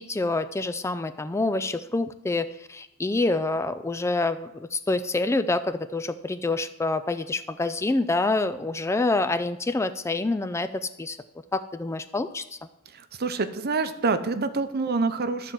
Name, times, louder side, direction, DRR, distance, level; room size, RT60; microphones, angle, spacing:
voice 1, 0.0-11.2 11.5-12.6, left 2 dB, 15° left, 11 dB, 0.3 m, -27 dB
voice 2, 12.9-15.5, right 4 dB, 45° right, 10 dB, 0.8 m, -27 dB
12.5 x 4.5 x 7.6 m, 0.86 s
head